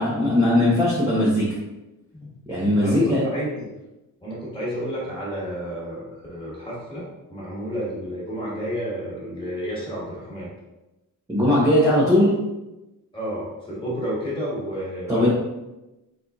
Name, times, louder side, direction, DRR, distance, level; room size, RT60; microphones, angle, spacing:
voice 1, 0.0-1.5 2.5-3.2 11.3-12.3 15.1-15.3, left 1 dB, 10° right, -9 dB, 0.7 m, -19 dB
voice 2, 2.8-3.7 4.2-7.0 7.3-10.5 13.1-15.3, equal, 15° left, -7 dB, 1.4 m, -31 dB
4.2 x 3.9 x 2.3 m, 1.0 s
wide cardioid pair, 180°, 33 cm